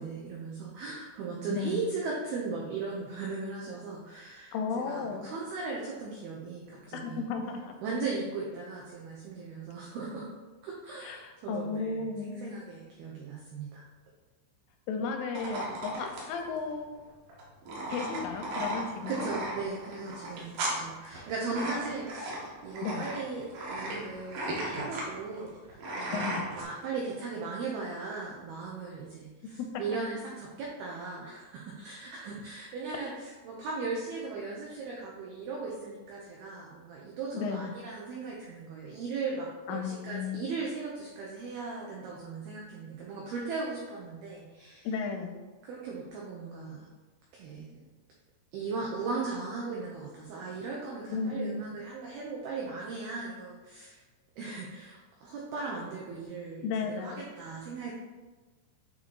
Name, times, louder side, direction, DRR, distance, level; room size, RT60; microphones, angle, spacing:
voice 1, 0.0-7.3 7.8-10.3 10.6-13.9 19.1-44.9 45.6-46.9 47.3-47.8 48.5-54.0 54.4-57.9, right 4 dB, 90° right, -3 dB, 2.1 m, -38 dB
voice 2, 1.5-1.8 4.5-5.3 7.0-7.7 11.0-12.5 14.9-17.1 17.9-19.3 22.8-23.1 26.1-26.4 29.6-29.8 37.3-37.7 39.7-40.4 44.8-45.4 51.1-51.7 56.6-57.3, left 5 dB, 85° left, 5 dB, 3.1 m, -34 dB
sound 1, 15.3-26.6, right 1 dB, 70° right, 2.0 m, -36 dB
8.8 x 3.0 x 4.5 m, 1.3 s
omnidirectional pair, 5.5 m